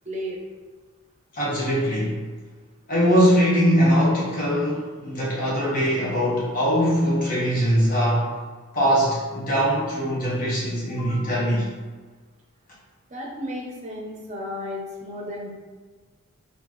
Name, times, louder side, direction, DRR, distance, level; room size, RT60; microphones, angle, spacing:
voice 1, 0.0-0.4 13.1-15.5, left 1 dB, 30° right, -2 dB, 0.7 m, -33 dB
voice 2, 1.3-2.1 2.9-8.3 8.7-11.7, equal, 40° left, -6 dB, 1.1 m, -21 dB
4.2 x 2.7 x 3.0 m, 1.4 s
head